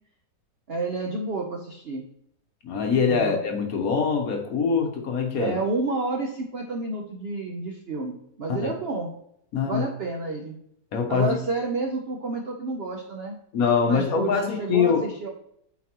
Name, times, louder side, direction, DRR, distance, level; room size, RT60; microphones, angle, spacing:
voice 1, 0.7-2.0 3.1-3.4 5.4-9.1 9.7-10.6 11.1-13.4 13.9-15.3, right 3 dB, 65° right, 2 dB, 0.6 m, -30 dB
voice 2, 2.6-5.6 8.5-8.7 9.5-9.8 10.9-11.3 13.5-15.0, left 6 dB, 60° left, 3 dB, 1.1 m, -23 dB
8.2 x 4.1 x 2.9 m, 0.73 s
omnidirectional pair, 2.0 m